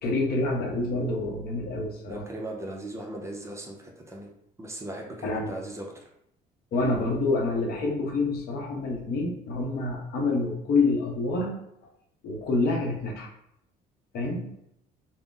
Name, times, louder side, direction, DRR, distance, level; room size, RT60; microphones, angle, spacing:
voice 1, 0.0-2.2 5.2-5.5 6.7-11.6 12.2-13.3 14.1-14.5, left 3 dB, 65° left, 1 dB, 0.7 m, -27 dB
voice 2, 2.1-4.3 4.6-6.0, right 1 dB, 15° right, -1 dB, 0.5 m, -38 dB
2.4 x 2.0 x 3.6 m, 0.76 s
cardioid pair, 110°, 17 cm